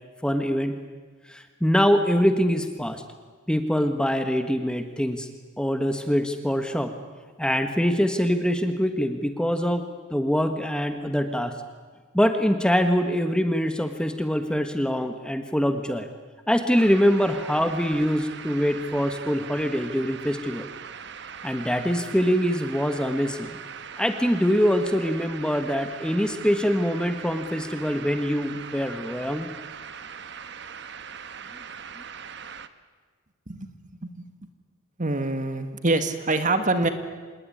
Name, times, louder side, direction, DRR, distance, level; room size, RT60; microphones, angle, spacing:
voice 1, 0.2-0.8 1.3-3.0 3.5-5.3 5.6-6.9 7.4-9.8 10.1-11.5 12.1-16.1 16.5-20.7 21.4-23.6 24.0-29.5, equal, 5° left, 7 dB, 1.3 m, -24 dB
sound 1, 16.7-32.7, right 7 dB, 60° right, 1.1 m, -40 dB
voice 2, 35.0-36.9, right 2 dB, 40° right, 8 dB, 1.9 m, -25 dB
27.0 x 19.5 x 9.9 m, 1.5 s
head